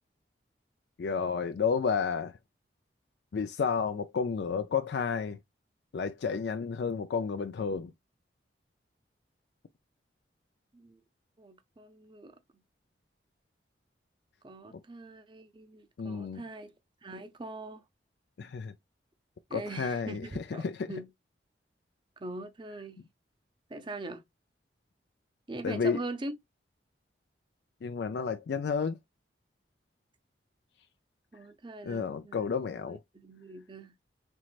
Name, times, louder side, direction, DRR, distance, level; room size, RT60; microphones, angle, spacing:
voice 1, 1.0-2.3 3.3-5.4 5.9-7.9 14.7-14.8 16.0-16.4 18.4-18.7 19.5-20.9 25.6-26.0 27.8-29.0 31.8-33.0, left 5 dB, 70° left, 0.4 m, -31 dB
voice 2, 11.4-12.6 14.4-16.7 17.0-17.8 19.5-21.1 22.2-23.0 23.7-24.2 25.5-26.4 31.3-32.5 32.8-33.9, right 2 dB, 25° right, 0.5 m, -42 dB
4.5 x 3.1 x 2.4 m
head